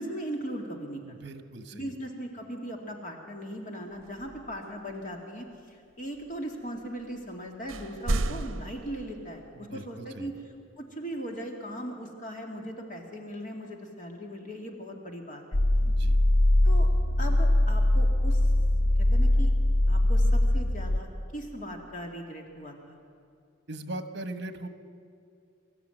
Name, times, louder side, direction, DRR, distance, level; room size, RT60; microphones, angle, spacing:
voice 1, 0.0-1.3 1.7-10.3 10.8-15.4 16.6-16.9 17.2-18.5 19.1-19.5 19.9-23.0, equal, 40° left, 1 dB, 2.3 m, -39 dB
voice 2, 1.1-1.9 9.5-10.3 15.8-16.2 23.7-24.7, right 2 dB, 60° right, 9 dB, 1.4 m, -40 dB
sound 1, 3.9-5.2 6.1-6.9 7.1-7.2 7.5-9.5, right 2 dB, 80° right, 0.8 m, -34 dB
sound 2, 15.5-21.0, left 1 dB, 90° left, 0.7 m, -22 dB
24.5 x 14.0 x 9.1 m, 2.4 s
head